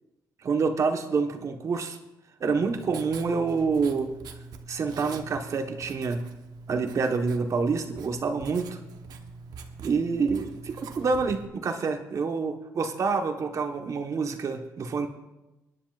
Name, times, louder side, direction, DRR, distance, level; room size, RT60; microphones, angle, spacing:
voice 1, 0.4-2.0 2.4-4.1 4.7-6.2 6.7-8.7 9.8-15.1, right 4 dB, 50° right, 5 dB, 1.1 m, -27 dB
Writing, 2.5-11.5, right 4 dB, 80° right, 1.0 m, -44 dB
25.0 x 9.9 x 2.4 m, 1.0 s
cardioid pair, 90°, 7 cm